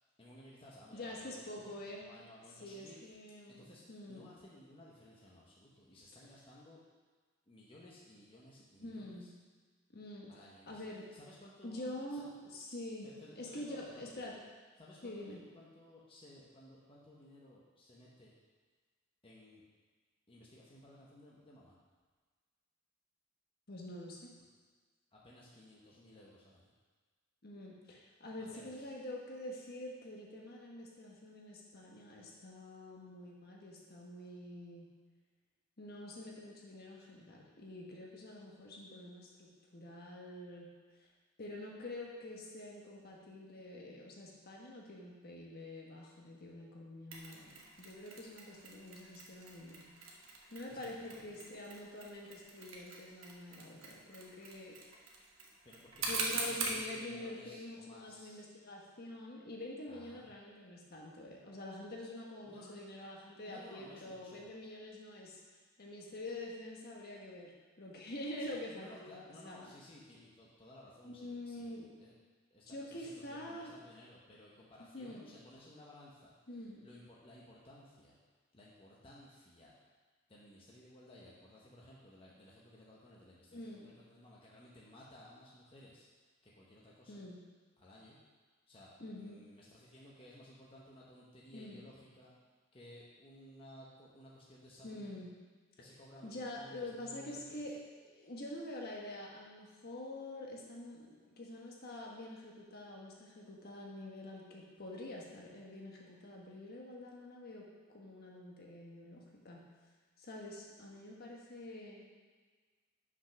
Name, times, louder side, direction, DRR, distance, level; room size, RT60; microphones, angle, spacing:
voice 1, 0.2-1.6 2.0-3.0 3.5-6.8 7.5-9.3 10.3-10.8 11.1-12.2 13.0-14.4 14.8-18.3 19.2-19.6 20.3-21.8 25.1-26.7 28.5-28.9 50.7-51.4 55.6-58.5 59.9-60.3 62.4-62.8 63.4-64.5 68.4-68.5 68.8-72.1 72.5-76.3 76.8-78.2 78.5-79.8 80.3-86.1 86.4-87.2 87.8-88.2 88.7-92.3 92.7-95.2 95.8-97.7, left 1 dB, 25° left, -5 dB, 1.1 m, -57 dB
voice 2, 0.9-2.0 2.6-4.3 8.8-9.3 9.9-10.3 10.7-11.1 11.6-14.3 15.0-15.4 23.7-24.3 27.4-34.8 35.8-40.7 41.4-50.2 50.5-54.8 56.1-65.4 65.8-69.7 71.0-71.9 72.7-73.8 74.9-75.3 76.5-76.8 83.5-83.9 87.1-87.4 89.0-89.4 91.5-91.8 94.8-95.3 96.2-97.7 98.0-107.7 107.9-109.6 110.2-112.0, left 1 dB, 50° left, -2 dB, 1.3 m, -46 dB
Mechanisms, 47.1-56.8, right 3 dB, 75° right, 1.3 m, -43 dB
6.1 x 5.5 x 5.9 m, 1.4 s
head